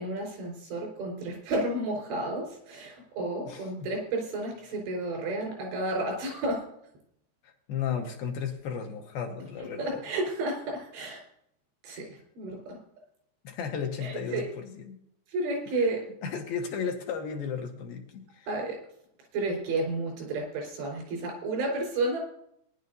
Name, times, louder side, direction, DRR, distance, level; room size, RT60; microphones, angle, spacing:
voice 1, 0.0-6.6 9.8-11.2 11.8-12.8 14.0-14.5 15.3-16.0 18.5-18.8 19.3-22.2, right 2 dB, 85° right, 0 dB, 6.6 m, -31 dB
voice 2, 3.5-3.9 7.7-10.0 13.4-15.0 16.2-18.5, left 7 dB, 70° left, 2 dB, 2.7 m, -34 dB
20.0 x 11.0 x 2.7 m, 0.71 s
omnidirectional pair, 5.0 m